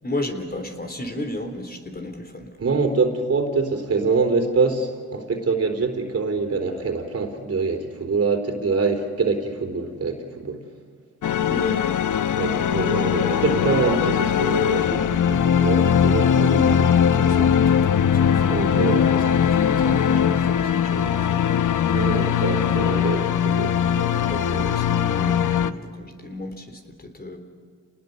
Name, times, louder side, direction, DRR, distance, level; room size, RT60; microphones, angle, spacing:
voice 1, 0.0-2.5 11.5-11.9 16.4-21.4 24.3-27.4, left 1 dB, 30° left, 6 dB, 3.5 m, -34 dB
voice 2, 2.6-10.6 12.4-16.5 18.5-19.3 21.9-24.6, right 4 dB, 50° right, 5 dB, 3.8 m, -25 dB
sound 1, 11.2-25.7, left 8 dB, 70° left, 0.9 m, -20 dB
29.0 x 20.0 x 6.8 m, 2.1 s
cardioid pair, 75°, 32 cm